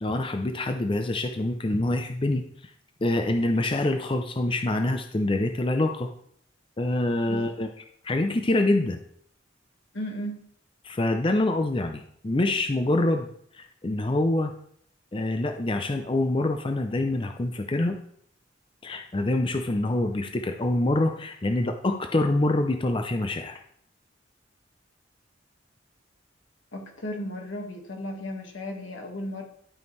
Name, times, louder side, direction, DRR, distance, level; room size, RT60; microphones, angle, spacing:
voice 1, 0.0-2.4 3.0-6.1 6.8-7.7 8.0-9.0 10.8-13.3 13.5-14.5 15.1-18.0 18.8-23.6, left 2 dB, 25° left, 5 dB, 0.5 m, -25 dB
voice 2, 9.9-10.5 26.7-29.4, left 1 dB, 80° left, 2 dB, 1.6 m, -35 dB
12.0 x 5.3 x 3.2 m, 0.65 s
head